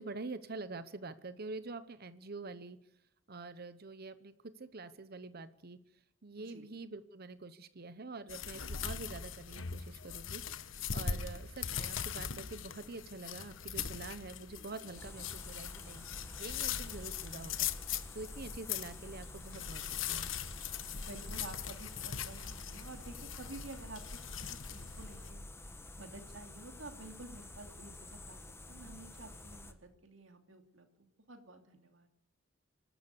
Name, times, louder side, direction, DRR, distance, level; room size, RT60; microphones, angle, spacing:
voice 1, 0.0-2.8 3.3-5.8 6.2-10.4 10.9-16.0 16.4-17.7 18.1-20.3, right 3 dB, 50° right, 13 dB, 1.0 m, -46 dB
voice 2, 6.4-6.7 20.9-25.4 26.0-28.4 28.7-32.1, right 2 dB, 70° right, 6 dB, 2.7 m, -51 dB
sound 1, 8.3-25.3, left 7 dB, 70° left, 1.2 m, -41 dB
sound 2, 15.0-29.7, left 2 dB, 15° left, 1.7 m, -49 dB
26.5 x 12.5 x 8.4 m, 0.72 s
head